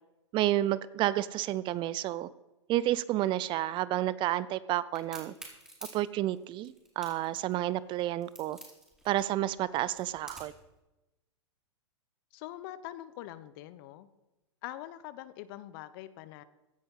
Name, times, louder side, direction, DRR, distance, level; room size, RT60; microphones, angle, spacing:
voice 1, 0.3-2.3 2.7-5.3 5.9-8.6 9.0-10.5, right 14 dB, 30° right, 18 dB, 0.5 m, -30 dB
Crack, 4.9-10.6, right 1 dB, 5° right, 4.6 m, -49 dB
voice 2, 12.3-14.1 14.6-16.4, left 14 dB, 50° left, 15 dB, 1.0 m, -44 dB
16.0 x 9.8 x 5.7 m, 1.0 s
hypercardioid pair, 110°, 15 cm